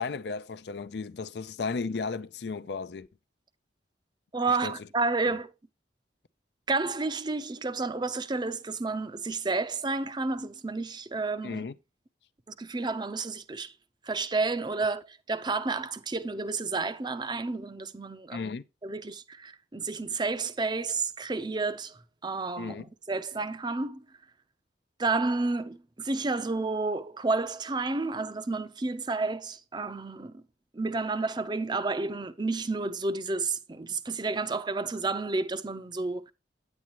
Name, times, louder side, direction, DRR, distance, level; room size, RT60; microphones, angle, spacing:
voice 1, 0.0-3.1 4.5-4.8 5.3-5.4 11.4-11.8 18.3-18.6 22.6-22.9, left 4 dB, 65° left, 0.5 m, -34 dB
voice 2, 4.3-5.5 6.7-11.6 12.6-13.7 14.0-18.5 18.8-24.0 25.0-30.4 30.7-36.3, right 3 dB, 25° right, 0.5 m, -31 dB
9.5 x 8.8 x 2.9 m
head